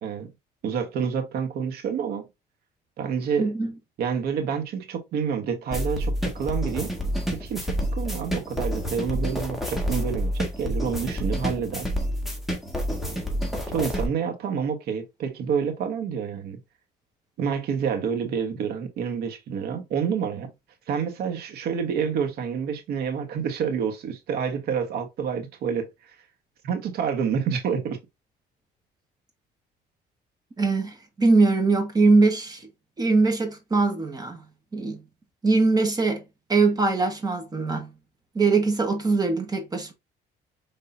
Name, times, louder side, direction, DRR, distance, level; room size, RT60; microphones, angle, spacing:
voice 1, 0.6-2.3 3.0-3.5 4.0-6.9 7.3-11.9 13.7-16.6 17.4-20.5 20.9-26.2 26.6-28.0, right 7 dB, 70° right, 1.3 m, -28 dB
voice 2, 3.4-3.7 30.6-32.7 33.0-34.4 34.7-35.0 35.4-36.2 36.5-37.9 38.3-39.9, right 3 dB, 25° right, 1.4 m, -22 dB
sound 1, 5.7-14.1, equal, ahead, 1.7 m, -28 dB
5.3 x 3.7 x 2.7 m
cardioid pair, 110°, 17 cm